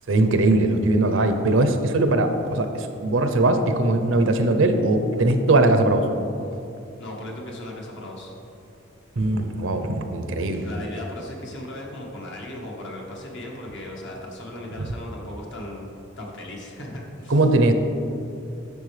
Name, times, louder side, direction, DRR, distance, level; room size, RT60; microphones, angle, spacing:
voice 1, 0.1-6.1 9.2-10.7 17.3-17.7, right 2 dB, 70° right, 7 dB, 0.6 m, -20 dB
voice 2, 7.0-8.3 10.6-15.9 16.2-17.4, left 1 dB, 60° left, -2 dB, 1.4 m, -37 dB
10.5 x 6.7 x 3.3 m, 2.7 s
head